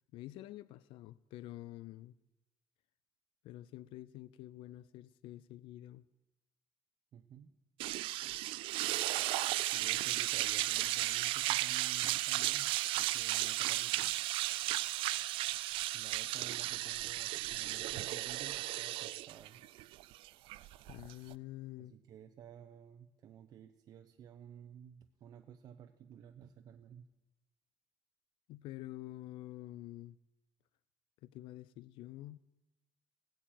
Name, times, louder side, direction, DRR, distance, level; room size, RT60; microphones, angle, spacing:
voice 1, 0.1-2.2 3.4-6.0 20.9-21.9 28.5-30.2 31.2-32.4, left 15 dB, 65° left, 0.4 m, -48 dB
voice 2, 7.1-7.5 9.4-12.7 13.0-14.1 15.9-19.6 20.3-20.4 21.8-27.0, right 9 dB, 40° right, 0.8 m, -54 dB
sound 1, 7.8-21.3, right 17 dB, 65° right, 0.4 m, -34 dB
16.5 x 8.7 x 9.0 m
cardioid pair, 175°, 10 cm